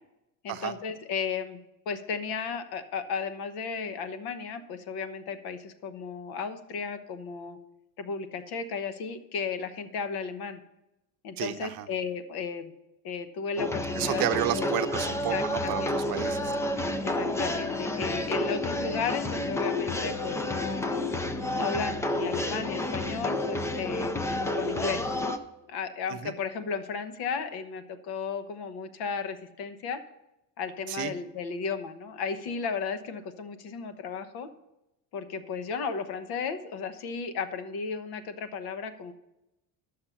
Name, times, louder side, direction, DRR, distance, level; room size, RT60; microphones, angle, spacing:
voice 1, 0.4-1.6 1.9-7.6 8.0-10.6 11.2-12.7 13.0-14.2 14.5-14.7 15.3-16.2 17.0-20.9 21.5-25.3 25.7-30.0 30.6-34.5 35.1-39.1, left 5 dB, 55° left, 10 dB, 1.2 m, -34 dB
voice 2, 11.4-11.9 14.0-16.5 26.2-26.3 30.9-31.1, right 13 dB, 50° right, 9 dB, 0.8 m, -31 dB
sound 1, 13.6-25.4, left 1 dB, 5° left, 0.3 m, -30 dB
11.5 x 6.8 x 5.7 m, 0.90 s
cardioid pair, 130°, 45 cm